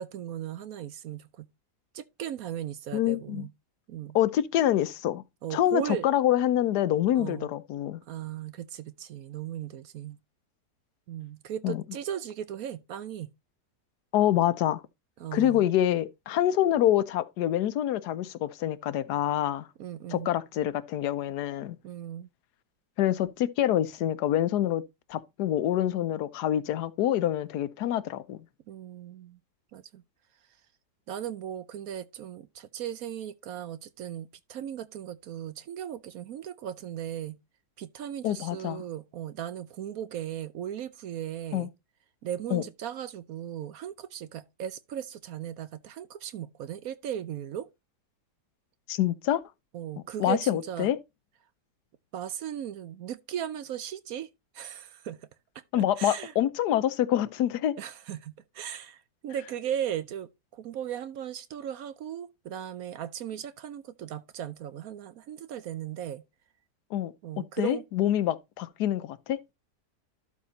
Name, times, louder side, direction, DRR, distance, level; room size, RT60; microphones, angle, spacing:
voice 1, 0.0-1.5 1.9-3.5 3.9-4.2 5.4-6.1 7.1-7.5 8.1-10.2 11.1-13.3 15.2-15.6 19.8-20.3 21.8-22.3 28.7-29.4 29.7-30.0 31.1-37.4 37.8-41.7 42.2-47.7 49.7-50.9 52.1-54.3 54.5-55.3 55.7-56.3 57.8-66.2 67.2-67.8, right 10 dB, 65° right, 1.0 m, -37 dB
voice 2, 2.9-3.5 4.1-5.2 5.5-8.0 11.6-11.8 14.1-14.8 15.3-19.7 20.1-21.8 23.0-24.8 25.1-28.4 38.2-38.8 41.5-41.7 42.5-42.6 48.9-49.4 50.2-51.0 55.7-57.7 66.9-67.1 67.6-69.4, left 12 dB, 80° left, 1.2 m, -26 dB
12.0 x 4.2 x 4.0 m
omnidirectional pair, 1.8 m